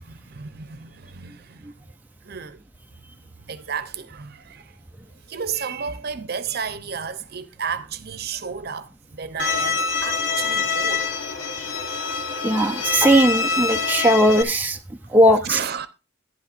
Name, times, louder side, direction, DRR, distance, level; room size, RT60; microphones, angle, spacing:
voice 1, 0.0-1.7 2.2-2.6 3.5-4.8 5.3-11.1 11.7-11.9 12.6-12.7 15.4-15.9, right 6 dB, 55° right, 0.8 m, -32 dB
Bowed string instrument, 9.4-14.4, left 5 dB, 85° left, 1.2 m, -25 dB
voice 2, 12.4-14.8 15.1-15.6, right 1 dB, 10° right, 0.5 m, -18 dB
11.0 x 11.0 x 2.5 m
head